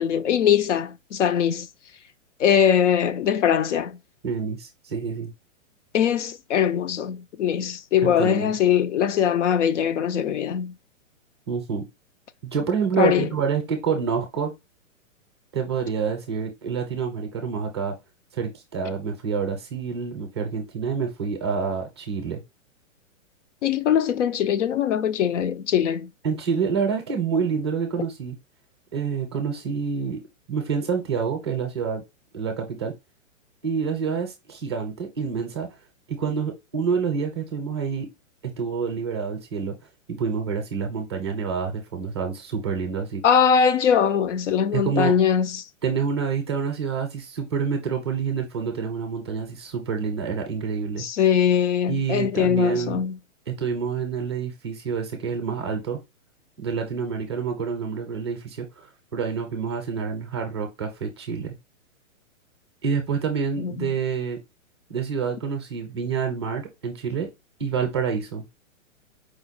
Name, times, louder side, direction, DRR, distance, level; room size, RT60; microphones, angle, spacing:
voice 1, 0.0-1.7 2.4-4.0 5.9-10.7 13.0-13.3 23.6-26.1 43.2-45.6 51.0-53.2 63.6-63.9, left 8 dB, 60° left, 0.5 m, -21 dB
voice 2, 4.2-5.3 8.0-8.5 11.5-11.8 12.5-14.5 15.5-17.9 18.3-22.4 26.2-28.4 28.9-30.2 30.5-32.0 32.3-32.9 33.6-35.7 36.1-38.1 38.4-39.7 40.1-43.2 44.7-45.1 45.8-51.0 51.9-53.0 53.5-56.0 56.6-61.5 62.8-64.4 64.9-67.3 67.6-68.4, right 6 dB, 20° right, 0.5 m, -27 dB
5.0 x 2.1 x 3.9 m
hypercardioid pair, 170°, 40 cm